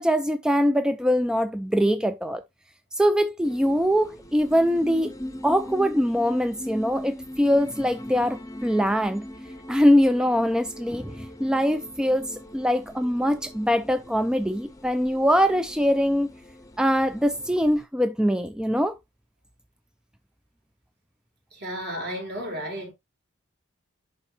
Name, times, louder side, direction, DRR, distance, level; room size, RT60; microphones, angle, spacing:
voice 1, 0.0-2.4 2.9-5.1 5.4-9.3 9.7-16.3 16.8-19.0, equal, 5° right, 0.3 m, -23 dB
sound 1, 3.4-17.8, left 1 dB, 15° left, 0.7 m, -41 dB
voice 2, 21.6-22.9, equal, 50° right, 4.2 m, -33 dB
10.5 x 4.4 x 2.8 m
head